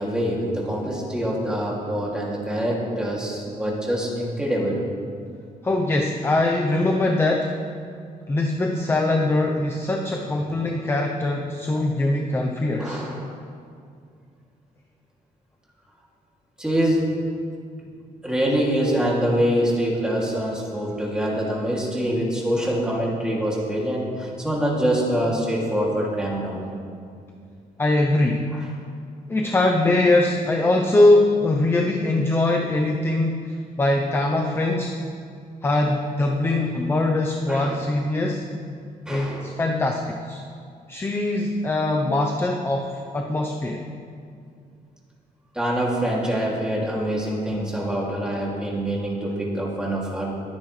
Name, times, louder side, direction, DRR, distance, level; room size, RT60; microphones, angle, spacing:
voice 1, 0.0-4.8 12.8-13.2 16.6-17.0 17.8-17.9 18.2-26.7 28.5-28.6 37.5-37.7 39.1-39.5 45.5-50.3, equal, 5° right, -4 dB, 2.6 m, -25 dB
voice 2, 5.6-7.5 8.3-13.0 27.8-28.5 29.3-35.0 35.6-38.5 39.1-40.4 40.9-43.9, left 2 dB, 15° left, 1 dB, 0.7 m, -22 dB
22.0 x 9.5 x 3.3 m, 2.3 s
cardioid pair, 140°, 15 cm